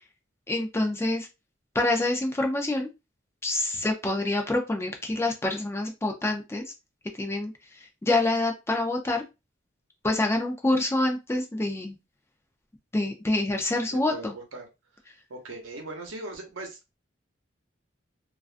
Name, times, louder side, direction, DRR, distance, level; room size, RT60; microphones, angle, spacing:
voice 1, 0.5-1.3 1.7-2.9 3.4-6.6 7.1-9.2 10.0-12.0 12.9-14.3, left 2 dB, 15° left, 3 dB, 0.4 m, -26 dB
voice 2, 13.9-14.7 15.3-17.0, right 2 dB, 85° right, 3 dB, 0.8 m, -39 dB
2.4 x 2.2 x 2.4 m, 0.25 s
head